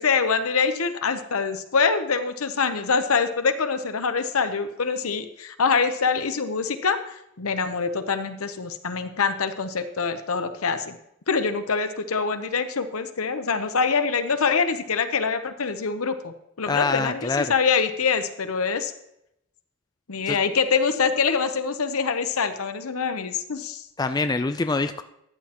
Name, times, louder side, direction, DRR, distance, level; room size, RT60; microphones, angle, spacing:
voice 1, 0.0-11.0 11.3-18.9 20.1-23.8, left 5 dB, 85° left, 10 dB, 0.8 m, -25 dB
voice 2, 16.7-17.5 20.3-20.4 24.0-25.0, left 3 dB, 20° left, 9 dB, 0.3 m, -25 dB
13.5 x 9.4 x 3.0 m, 0.81 s
head